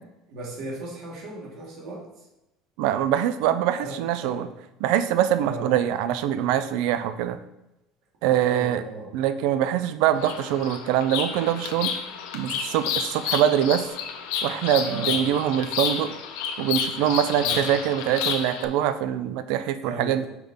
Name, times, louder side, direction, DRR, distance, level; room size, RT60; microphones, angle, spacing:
voice 1, 0.3-2.3 3.8-4.4 5.4-5.7 8.3-9.1 14.8-15.2 17.4-17.7 19.8-20.2, right 2 dB, 50° right, -3 dB, 2.1 m, -36 dB
voice 2, 2.8-4.5 4.8-7.4 8.2-8.8 9.1-11.9 12.3-13.9 14.4-16.1 16.6-20.3, right 10 dB, 65° right, 11 dB, 0.4 m, -24 dB
Bird vocalization bird call bird song, 10.1-18.7, left 7 dB, 80° left, 0.9 m, -30 dB
5.7 x 5.4 x 3.6 m, 0.93 s
cardioid pair, 165°, 0 cm